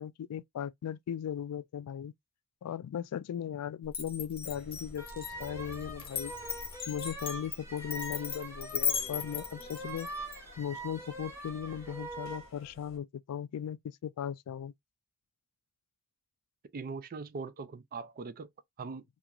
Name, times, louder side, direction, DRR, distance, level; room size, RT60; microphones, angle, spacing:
voice 1, 0.0-2.1 2.6-6.3 6.9-10.1 10.6-14.7, left 9 dB, 85° left, 0.3 m, -38 dB
Glass, 3.9-10.4, left 7 dB, 25° left, 0.7 m, -37 dB
sound 1, 4.4-13.0, left 1 dB, 60° left, 1.0 m, -53 dB
sound 2, 5.0-12.5, right 2 dB, 10° right, 0.9 m, -44 dB
voice 2, 16.7-18.5 18.8-19.0, right 4 dB, 40° right, 0.4 m, -41 dB
2.9 x 2.4 x 2.3 m
head